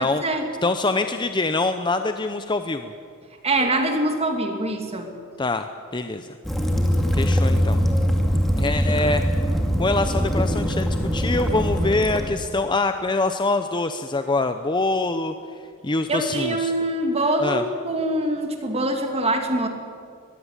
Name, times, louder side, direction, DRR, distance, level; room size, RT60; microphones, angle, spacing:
voice 1, 0.0-0.4 3.4-5.1 16.1-19.7, right 1 dB, 30° right, 4 dB, 2.4 m, -24 dB
voice 2, 0.6-2.9 5.4-6.3 7.1-7.8 8.6-9.2 9.8-15.3 15.8-16.7 17.4-17.6, left 3 dB, 20° left, 8 dB, 0.7 m, -24 dB
Waves surf / Splash splatter / Trickle dribble, 6.4-12.3, equal, ahead, 2.4 m, -22 dB
21.5 x 15.5 x 9.9 m, 2.3 s
head